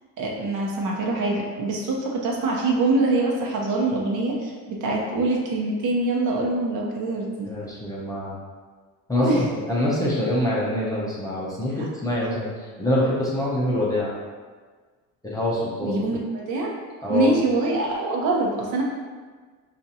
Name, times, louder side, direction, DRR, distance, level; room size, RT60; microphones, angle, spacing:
voice 1, 0.2-7.5 9.2-9.4 15.8-16.7 17.1-18.8, right 2 dB, 65° right, -2 dB, 0.9 m, -24 dB
voice 2, 7.5-8.3 9.1-14.1 15.2-16.0 17.0-17.5, left 1 dB, 10° left, -7 dB, 0.5 m, -25 dB
5.2 x 2.5 x 2.8 m, 1.5 s
cardioid pair, 165°, 35 cm